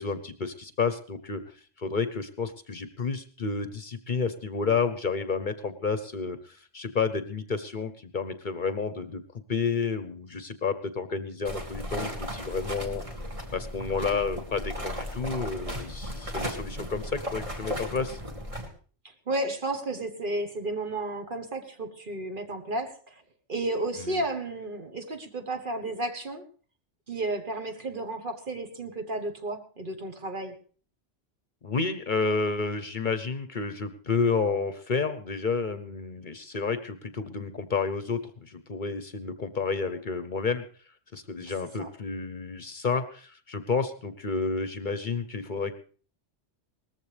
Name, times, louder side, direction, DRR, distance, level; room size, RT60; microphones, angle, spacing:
voice 1, 0.0-9.2 9.5-13.0 13.5-18.2 24.0-24.2 31.6-40.6 41.1-45.7, left 4 dB, 50° left, 11 dB, 0.9 m, -30 dB
sound 1, 11.4-18.7, equal, 30° right, 2.0 m, -36 dB
voice 2, 19.0-23.2 23.5-26.4 27.1-30.6 41.8-41.9, right 2 dB, 45° right, 6 dB, 1.4 m, -32 dB
19.0 x 14.5 x 3.3 m, 0.41 s
omnidirectional pair, 1.2 m